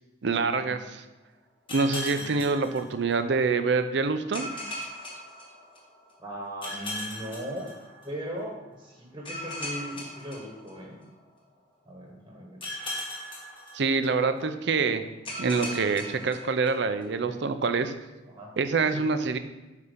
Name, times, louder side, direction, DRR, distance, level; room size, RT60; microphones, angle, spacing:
voice 1, 0.2-1.0 1.7-4.5 13.7-15.0 15.4-17.9 18.6-19.4, right 4 dB, 65° right, 9 dB, 0.5 m, -26 dB
sound 1, 1.7-3.4 4.3-6.1 6.6-8.4 9.3-11.2 12.6-14.4 15.3-17.1, left 1 dB, 30° left, 1.3 m, -38 dB
voice 2, 6.2-7.7 8.0-11.0 11.8-12.6 18.3-18.6 18.9-19.1, equal, 20° right, -2 dB, 1.2 m, -38 dB
8.2 x 2.8 x 5.0 m, 1.1 s
head